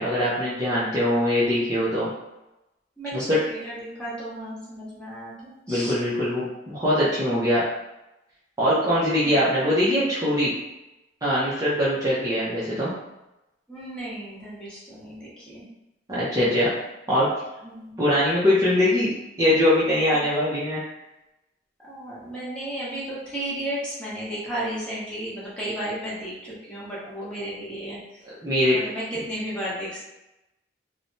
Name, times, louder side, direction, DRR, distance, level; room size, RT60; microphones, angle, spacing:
voice 1, 0.0-2.1 3.1-3.4 5.7-7.6 8.6-10.5 11.2-12.9 16.1-16.7 17.1-17.3 18.0-19.1 19.4-20.8 28.4-28.8, left 1 dB, 20° right, -10 dB, 0.6 m, -22 dB
voice 2, 3.0-5.9 7.0-7.2 9.2-9.6 13.7-15.6 17.6-18.0 20.1-20.2 21.8-28.2 28.7-30.0, right 1 dB, 5° left, -9 dB, 1.0 m, -34 dB
3.2 x 2.1 x 2.6 m, 0.94 s
head